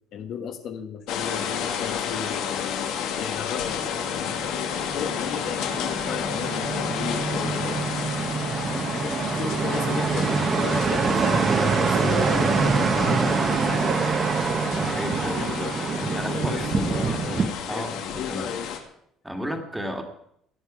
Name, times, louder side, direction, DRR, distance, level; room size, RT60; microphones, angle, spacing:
voice 1, 0.1-7.8 8.9-14.1 15.2-17.4 17.7-17.9 18.2-18.7, left 7 dB, 50° left, 7 dB, 1.2 m, -35 dB
sound 1, 1.1-18.8, left 8 dB, 80° left, 2.2 m, -31 dB
sound 2, 4.0-17.5, right 5 dB, 30° right, 1.1 m, -25 dB
voice 2, 10.9-11.3 11.7-11.9 14.8-15.4 16.1-17.0 17.7-18.5 19.2-20.0, equal, 5° right, 4 dB, 1.8 m, -33 dB
18.0 x 12.0 x 5.0 m, 0.73 s
cardioid pair, 160°, 0 cm